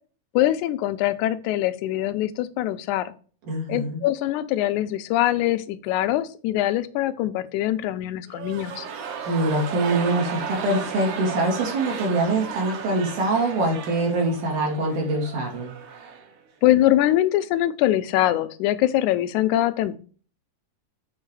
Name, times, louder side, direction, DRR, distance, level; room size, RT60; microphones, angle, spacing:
voice 1, 0.3-3.1 3.7-8.9 16.6-20.0, left 14 dB, 90° left, 11 dB, 2.0 m, -23 dB
voice 2, 3.5-4.0 9.3-15.7, right 2 dB, 85° right, 0 dB, 3.8 m, -24 dB
sound 1, 8.3-16.4 16.6-16.7, right 6 dB, 60° right, 1.6 m, -34 dB
7.4 x 3.8 x 4.6 m, 0.40 s
omnidirectional pair, 3.4 m